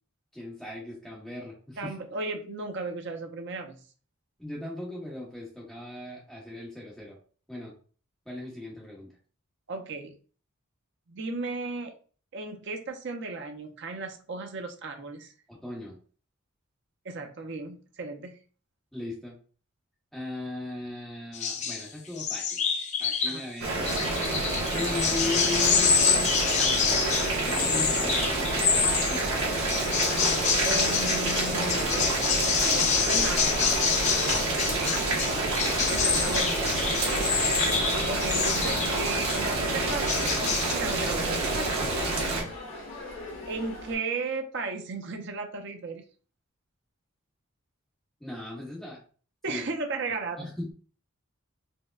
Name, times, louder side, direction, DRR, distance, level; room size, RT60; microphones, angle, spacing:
voice 1, 0.3-1.9 4.4-7.2 7.5-7.7 8.2-9.1 15.5-16.0 18.9-19.3 20.1-22.6 23.0-23.7 24.7-26.4 27.4-29.4 35.1-36.2 48.2-49.0 49.5-49.6 50.0-50.7, left 2 dB, ahead, -4 dB, 0.9 m, -38 dB
voice 2, 1.8-3.8 9.7-10.1 11.1-11.9 12.3-15.3 17.0-18.4 23.3-23.4 30.6-32.1 32.6-33.7 35.9-36.9 38.1-40.4 40.7-41.9 43.5-46.0 49.4-50.5, right 3 dB, 55° right, 4 dB, 0.5 m, -35 dB
sound 1, 21.3-21.9 22.2-23.4 23.9-29.2 29.7-39.5 39.8-40.7, left 6 dB, 35° left, 0.4 m, -27 dB
Boiling, 23.6-42.4, right 2 dB, 80° right, 1.2 m, -28 dB
sound 2, 29.5-44.0, left 2 dB, 60° left, 1.2 m, -42 dB
4.4 x 2.1 x 2.3 m, 0.40 s
head